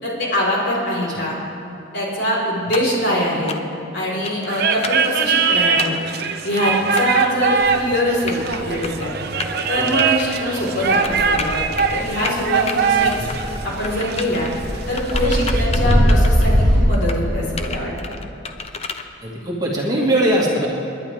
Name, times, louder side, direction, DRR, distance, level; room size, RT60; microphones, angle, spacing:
voice 1, 0.0-1.4 1.9-3.5 3.9-5.9 6.4-9.1 9.7-11.6 11.9-13.3 13.6-14.5 14.9-17.9, left 1 dB, 60° left, -4 dB, 4.3 m, -23 dB
sound 1, 2.7-3.0 3.5-3.8 4.2-4.5 4.8-5.1 5.8-6.0 7.0-7.3 8.0-8.6 8.8-9.1 9.4-9.6 10.0-10.3 11.0-11.9 12.2-12.7 13.1-13.6 13.8-14.5 15.0-16.5 16.9-17.2 17.6-19.0, left 5 dB, 30° left, 0.7 m, -30 dB
sound 2, 4.5-15.6, right 5 dB, 55° right, 0.7 m, -22 dB
sound 3, 7.6-16.8, equal, 5° left, 4.5 m, -23 dB
voice 2, 19.2-20.7, right 1 dB, 20° right, -4 dB, 2.0 m, -21 dB
30.0 x 10.5 x 3.5 m, 2.8 s
head